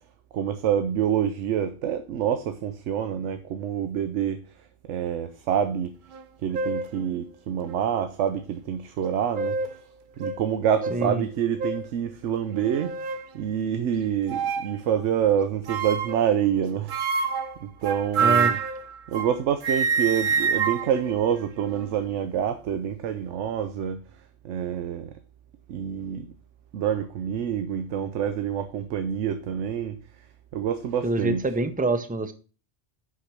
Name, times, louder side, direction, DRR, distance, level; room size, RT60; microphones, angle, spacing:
voice 1, 0.3-4.4 4.9-5.9 6.4-9.7 10.2-17.0 17.6-18.6 19.1-24.0 24.4-25.1 25.7-26.3 26.7-30.0 30.5-31.5, right 9 dB, 75° right, 1.0 m, -27 dB
sound 1, 6.1-6.2 6.5-6.9 7.7-7.8 9.0-9.8 10.2-10.4 10.8-11.0 11.6-11.9 12.5-13.3 14.3-14.7 15.7-16.3 16.9-19.4 19.6-22.0, right 5 dB, 50° right, 0.7 m, -27 dB
voice 2, 18.2-18.5 31.0-32.3, right 2 dB, 15° right, 0.3 m, -25 dB
5.8 x 5.8 x 6.0 m
omnidirectional pair, 1.3 m